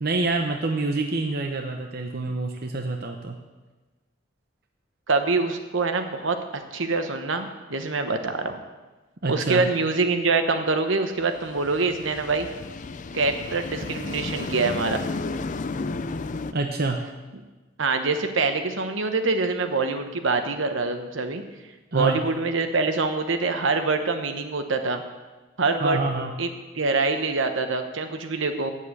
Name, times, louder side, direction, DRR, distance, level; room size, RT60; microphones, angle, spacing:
voice 1, 0.0-3.4 9.2-9.6 16.5-17.0 21.9-22.2 25.8-26.3, right 3 dB, 50° right, 3 dB, 0.8 m, -26 dB
voice 2, 5.1-8.6 9.3-12.5 13.1-15.0 17.8-21.4 21.9-25.0 25.6-26.0 26.4-26.5 26.7-28.7, right 3 dB, 70° right, 7 dB, 1.0 m, -25 dB
sound 1, 11.2-16.5, left 3 dB, 40° left, 0.4 m, -33 dB
8.5 x 7.6 x 8.4 m, 1.2 s
head